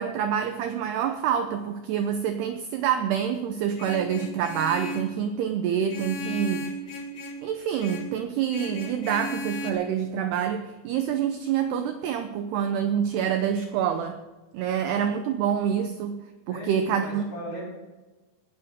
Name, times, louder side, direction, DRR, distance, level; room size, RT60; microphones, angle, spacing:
voice 1, 0.0-6.7 7.4-14.2 14.5-16.2 16.5-17.2, right 8 dB, 80° right, 7 dB, 2.5 m, -27 dB
Vehicle horn car horn honking, 3.8-5.1 5.9-7.5 7.8-8.2 8.5-9.7, equal, 50° left, 2.1 m, -35 dB
voice 2, 16.5-17.7, equal, 30° left, -5 dB, 5.3 m, -37 dB
19.0 x 11.0 x 3.6 m, 1.2 s
omnidirectional pair, 5.4 m